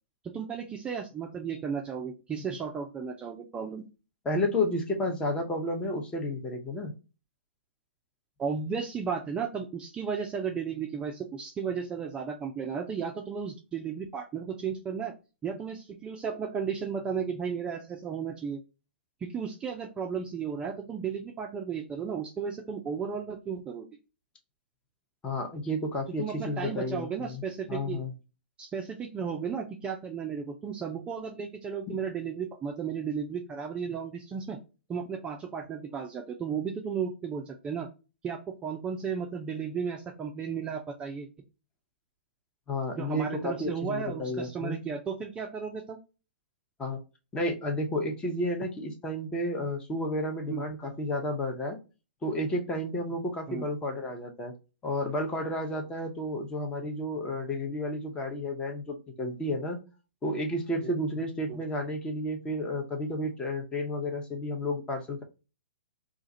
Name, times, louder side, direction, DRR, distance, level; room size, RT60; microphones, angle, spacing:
voice 1, 0.2-3.9 8.4-15.1 15.4-18.6 19.2-23.9 26.2-28.0 28.6-34.6 34.9-37.9 38.2-41.3 42.9-46.0 50.5-50.6 53.5-53.7 60.8-60.9 61.5-61.6, right 6 dB, 15° right, 2 dB, 0.4 m, -34 dB
voice 2, 4.2-6.9 25.2-27.4 27.7-28.1 31.9-32.0 42.7-44.8 46.8-47.0 47.3-51.8 52.2-54.5 54.8-59.8 60.2-65.2, left 1 dB, 15° left, 3 dB, 0.8 m, -31 dB
2.5 x 2.4 x 4.0 m, 0.30 s
hypercardioid pair, 120°, 6 cm